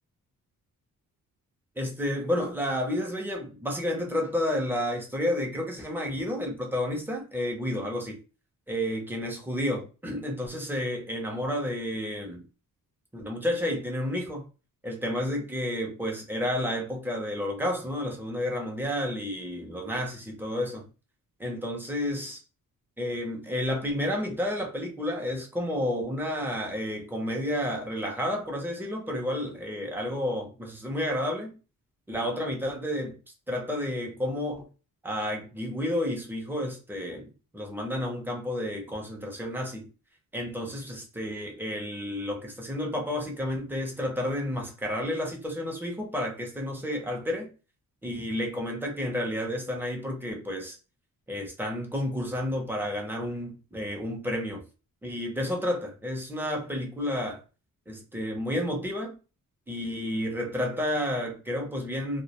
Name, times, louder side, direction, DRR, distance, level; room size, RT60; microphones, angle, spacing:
voice 1, 1.8-8.2 8.7-12.4 13.1-14.5 14.8-20.8 21.4-22.4 23.0-31.5 32.1-33.2 33.5-34.7 35.0-39.9 40.3-47.5 48.0-50.8 51.3-54.6 55.0-57.4 57.9-59.1 59.7-62.2, left 1 dB, 5° right, 0.5 m, -31 dB
2.2 x 2.1 x 2.7 m
wide cardioid pair, 160°, 34 cm